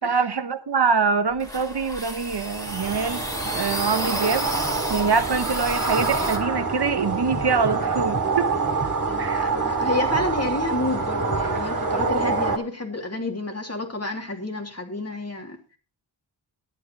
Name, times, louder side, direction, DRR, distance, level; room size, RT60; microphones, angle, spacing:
voice 1, 0.0-3.2 3.5-4.5 4.9-8.5 9.2-9.5, right 5 dB, 60° right, 1.1 m, -24 dB
sound 1, 1.3-6.4, equal, 10° left, 2.8 m, -32 dB
sound 2, 2.4-12.6, right 4 dB, 45° right, 2.5 m, -26 dB
voice 2, 9.1-15.6, left 2 dB, 35° left, 3.1 m, -30 dB
11.5 x 8.6 x 4.7 m
wide cardioid pair, 55°, 45 cm